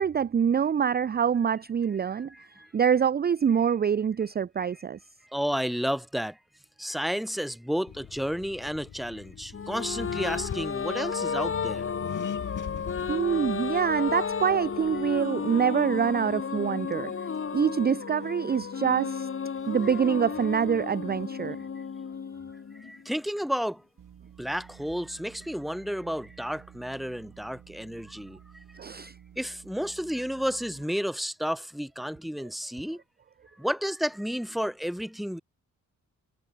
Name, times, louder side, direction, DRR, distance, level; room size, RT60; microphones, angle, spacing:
voice 1, 0.0-2.3 2.7-5.0 13.1-17.1 17.5-19.3 19.7-21.6 28.8-29.1, right 7 dB, 30° right, 0.5 m, -25 dB
voice 2, 2.1-2.7 5.3-6.4 6.8-11.9 22.8-23.8 24.4-28.4 29.4-33.0 33.6-35.4, equal, ahead, 1.3 m, -31 dB
Accelerating revving vroom, 7.9-15.2, left 8 dB, 70° left, 4.6 m, -42 dB
sound 1, 9.5-23.1, left 6 dB, 40° left, 1.6 m, -33 dB
sound 2, 24.0-30.8, right 9 dB, 70° right, 2.1 m, -52 dB
cardioid pair, 95°, 32 cm